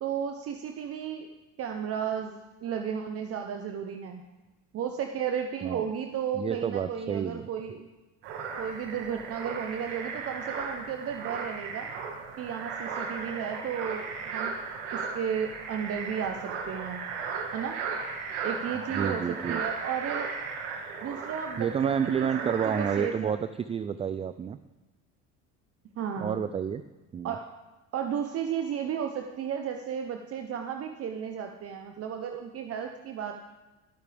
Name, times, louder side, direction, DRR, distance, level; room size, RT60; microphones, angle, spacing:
voice 1, 0.0-1.3 1.6-4.2 4.7-7.9 8.6-11.9 12.4-14.6 14.9-17.0 17.5-17.8 18.4-20.3 21.0-23.3 26.0-26.4 27.2-27.5 27.9-33.3, right 8 dB, 45° right, 4 dB, 0.9 m, -34 dB
voice 2, 6.3-7.5 18.9-19.6 21.6-23.4 23.7-24.6 26.2-26.8 27.1-27.3, right 7 dB, 20° right, 12 dB, 0.3 m, -29 dB
sound 1, 8.2-23.1, right 5 dB, 85° right, 2.0 m, -36 dB
22.0 x 8.2 x 3.5 m, 1.1 s
supercardioid pair, 110°, 34 cm